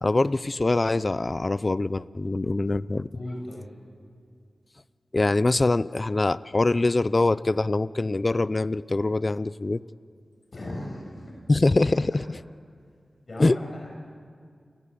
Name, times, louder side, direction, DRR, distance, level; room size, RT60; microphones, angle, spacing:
voice 1, 0.0-3.1 5.1-9.8 11.5-12.4 13.4-13.6, left 2 dB, 35° left, 17 dB, 0.6 m, -23 dB
voice 2, 3.1-3.7 10.5-11.2 12.1-12.2 13.3-13.9, left 1 dB, 55° left, -2 dB, 6.6 m, -37 dB
29.0 x 20.0 x 8.5 m, 2.1 s
wide cardioid pair, 80°, 0 cm